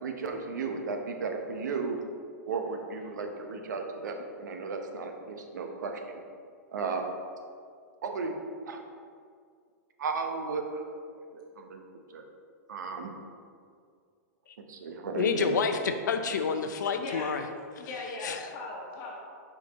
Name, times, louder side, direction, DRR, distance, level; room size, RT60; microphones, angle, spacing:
voice 1, 0.0-2.0 2.5-6.0 6.7-7.0 8.0-8.3 8.6-8.8 10.0-11.8 12.1-12.2 12.7-13.1 14.7-15.6, right 4 dB, 90° right, 4 dB, 0.8 m, -34 dB
voice 2, 15.1-17.4 18.2-18.5, left 6 dB, 90° left, 7 dB, 0.5 m, -29 dB
voice 3, 17.0-17.3 17.8-19.1, left 2 dB, 40° left, -3 dB, 1.5 m, -38 dB
5.4 x 5.0 x 4.0 m, 2.2 s
hypercardioid pair, 155°, 10 cm